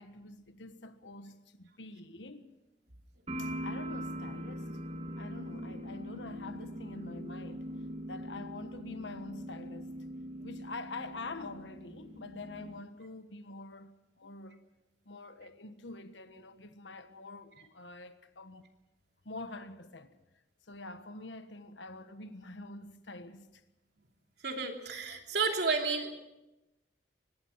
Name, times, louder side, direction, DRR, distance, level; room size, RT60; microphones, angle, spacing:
voice 1, 0.0-2.5 3.4-4.8 5.2-7.7 8.1-9.9 10.4-14.6 15.0-18.7 19.2-20.2 20.7-23.6, left 2 dB, 85° left, 1.4 m, -46 dB
sound 1, 3.3-12.8, equal, 35° right, 2.5 m, -42 dB
voice 2, 24.4-26.2, right 4 dB, 65° right, 3.1 m, -32 dB
24.0 x 20.5 x 5.7 m
head